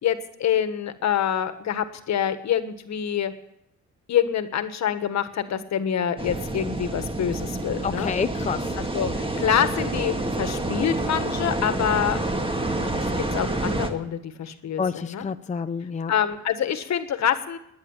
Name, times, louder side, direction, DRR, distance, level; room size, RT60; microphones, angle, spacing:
voice 1, 0.0-3.3 4.1-8.1 8.8-12.2 12.8-12.9 13.2-15.2 16.1-17.6, left 9 dB, 65° left, 10 dB, 1.6 m, -26 dB
sound 1, 6.2-13.9, right 2 dB, 15° right, 1.9 m, -28 dB
voice 2, 7.8-8.6 14.8-16.1, left 5 dB, 25° left, 10 dB, 0.6 m, -28 dB
19.5 x 10.0 x 7.3 m, 0.79 s
cardioid pair, 90°, 30 cm